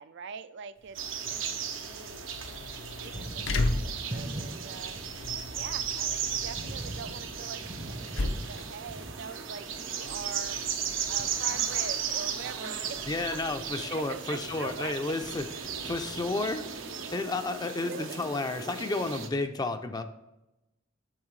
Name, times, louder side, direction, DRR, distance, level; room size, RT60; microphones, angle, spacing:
voice 1, 0.0-2.3 2.8-3.3 3.5-5.0 5.5-10.6 11.1-15.1 17.9-18.2, right 6 dB, 60° right, 14 dB, 0.4 m, -44 dB
sound 1, 0.8-16.1, left 2 dB, 70° left, 0.7 m, -38 dB
Thunder, 0.9-2.1 2.4-17.6, right 1 dB, 25° right, 0.7 m, -45 dB
sound 2, 0.9-19.3, right 7 dB, 85° right, 1.0 m, -36 dB
voice 2, 13.1-20.0, left 2 dB, 20° left, 7 dB, 0.5 m, -32 dB
8.7 x 6.3 x 3.2 m, 0.95 s
head